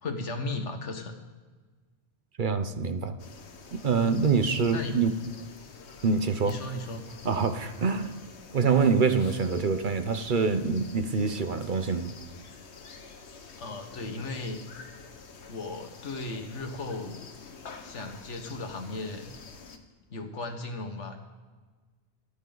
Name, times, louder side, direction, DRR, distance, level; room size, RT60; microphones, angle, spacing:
voice 1, 0.0-1.2 4.7-5.0 6.4-7.0 13.6-14.6 15.5-17.2 17.8-19.3 20.1-21.2, left 2 dB, 85° left, 6 dB, 1.6 m, -36 dB
voice 2, 2.4-3.1 3.8-5.1 6.0-6.6 7.2-8.1 8.5-12.1, right 5 dB, 50° right, 9 dB, 0.9 m, -25 dB
sound 1, 3.2-19.8, left 4 dB, 70° left, 1.4 m, -48 dB
24.5 x 8.4 x 3.9 m, 1.4 s
omnidirectional pair, 1.2 m